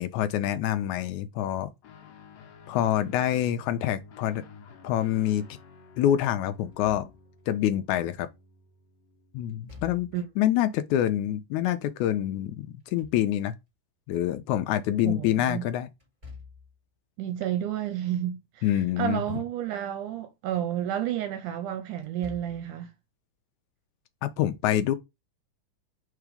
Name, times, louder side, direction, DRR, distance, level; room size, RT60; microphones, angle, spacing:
voice 1, 0.0-1.7 2.7-4.4 4.8-5.4 6.0-7.1 7.5-8.3 9.3-10.1 10.4-13.5 14.1-15.9 18.6-19.4 24.2-25.0, left 12 dB, 85° left, 1.7 m, -26 dB
Guitar, 1.8-9.5, left 5 dB, 65° left, 1.8 m, -51 dB
Slam / Thump thud, 6.6-7.5 9.5-10.4 12.6-13.7 16.0-16.8 18.9-19.5 19.8-19.9 21.9-22.8, left 5 dB, 15° right, 2.0 m, -49 dB
voice 2, 15.0-15.7 17.2-22.9, right 11 dB, 80° right, 2.0 m, -31 dB
4.6 x 4.0 x 5.0 m
omnidirectional pair, 3.9 m